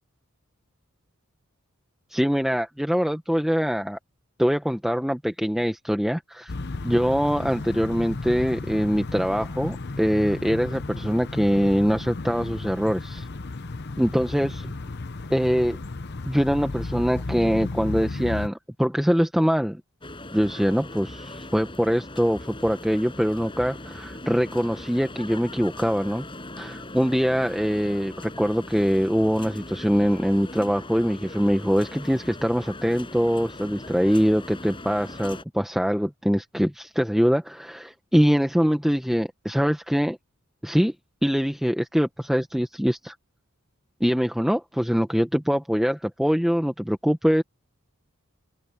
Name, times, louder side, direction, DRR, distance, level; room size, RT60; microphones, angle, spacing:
voice 1, 2.1-4.0 4.4-6.5 6.8-13.3 14.0-14.8 15.3-15.8 16.2-19.8 20.3-26.2 26.6-40.2 40.6-40.9 41.2-43.1 44.0-47.4, equal, ahead, 0.8 m, -23 dB
sound 1, 6.5-18.5, left 3 dB, 50° left, 0.8 m, -34 dB
sound 2, 20.0-35.4, left 1 dB, 25° left, 6.4 m, -40 dB
open air
head